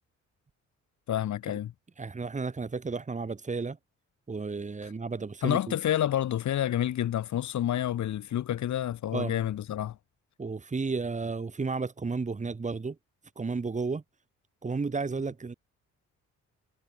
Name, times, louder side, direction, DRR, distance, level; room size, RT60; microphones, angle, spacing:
voice 1, 1.1-1.7 5.4-10.0, left 11 dB, 75° left, 5.1 m, -29 dB
voice 2, 2.0-3.8 4.3-5.7 9.1-9.4 10.4-13.0 13.4-14.0 14.6-15.5, right 4 dB, 25° right, 6.2 m, -32 dB
cardioid pair, 135°, 29 cm